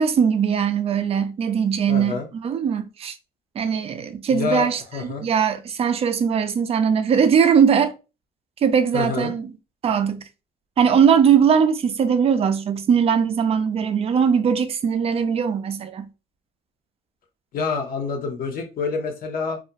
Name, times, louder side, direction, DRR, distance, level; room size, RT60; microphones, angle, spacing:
voice 1, 0.0-3.1 3.6-7.9 8.6-9.5 9.8-10.2 10.8-16.1, right 7 dB, 35° right, 0.4 m, -20 dB
voice 2, 1.9-2.3 4.3-5.3 8.9-9.3 17.5-19.6, left 5 dB, 60° left, 0.7 m, -27 dB
2.3 x 2.1 x 2.7 m
cardioid pair, 110°, 17 cm